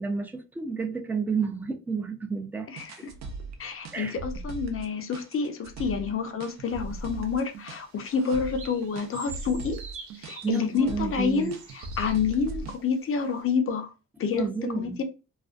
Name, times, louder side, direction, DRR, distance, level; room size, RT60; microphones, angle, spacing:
voice 1, 0.0-2.7 3.0-3.1 3.9-4.2 10.4-11.5 14.3-15.0, right 5 dB, 5° right, 0.4 m, -30 dB
voice 2, 2.7-3.1 3.6-9.8 10.2-11.5 12.0-14.5 14.8-15.0, left 5 dB, 45° left, 0.6 m, -28 dB
sound 1, 2.8-12.8, right 3 dB, 65° right, 0.5 m, -39 dB
sound 2, 6.7-12.7 13.2-13.3, right 5 dB, 85° right, 0.8 m, -47 dB
2.4 x 2.1 x 2.4 m
cardioid pair, 90°, 30 cm